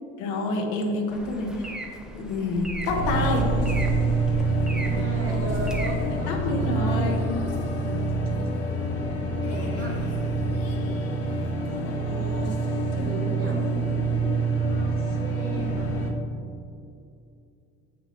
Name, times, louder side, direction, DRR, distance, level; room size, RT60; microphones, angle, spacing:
voice 1, 0.2-1.7 2.1-3.4 6.3-7.2 13.0-13.1 13.4-13.6, left 3 dB, 85° left, 1 dB, 1.1 m, -28 dB
sound 1, 1.1-6.1, right 1 dB, ahead, 0.6 m, -33 dB
sound 2, 2.9-16.1, right 3 dB, 55° left, 1.1 m, -26 dB
voice 2, 4.7-7.2 9.3-10.0 11.7-12.6 12.9-13.6 14.6-16.0, right 2 dB, 45° right, -1 dB, 0.9 m, -37 dB
7.0 x 5.9 x 3.2 m, 2.5 s
cardioid pair, 115°, 30 cm